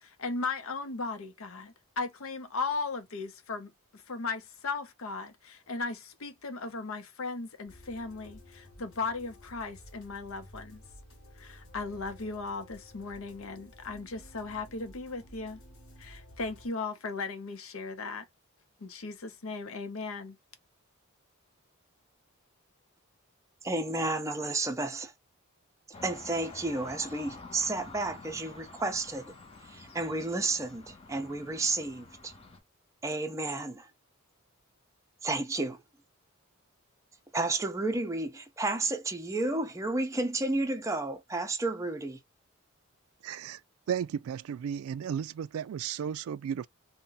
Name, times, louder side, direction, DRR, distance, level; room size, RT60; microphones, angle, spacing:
voice 1, 0.0-10.8 11.4-15.6 16.0-18.2 18.8-20.4, left 4 dB, 75° left, 0.7 m, -37 dB
Kawaii Logo, 7.7-16.7, equal, 60° left, 1.1 m, -53 dB
voice 2, 23.6-25.1 26.0-29.3 29.7-32.3 33.0-33.9 35.2-35.8 37.3-42.2, right 2 dB, 15° right, 0.5 m, -31 dB
sound 1, 25.9-32.6, left 3 dB, 25° left, 0.7 m, -49 dB
voice 3, 43.2-43.6 43.9-46.7, right 8 dB, 75° right, 0.3 m, -34 dB
2.7 x 2.2 x 3.8 m
head